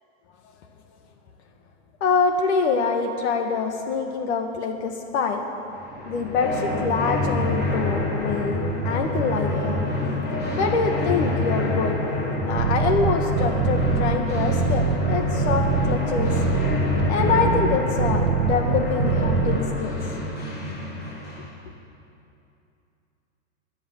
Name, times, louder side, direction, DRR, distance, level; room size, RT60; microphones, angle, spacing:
voice 1, 2.0-5.5 6.1-9.9 10.6-12.1 12.5-16.3 17.1-19.9, left 5 dB, 60° left, 4 dB, 1.8 m, -25 dB
sound 1, 5.8-21.5, left 1 dB, 25° left, 4.6 m, -26 dB
sound 2, 12.6-19.6, right 6 dB, 85° right, 1.1 m, -24 dB
18.0 x 10.5 x 7.2 m, 2.7 s
hypercardioid pair, 130°, 37 cm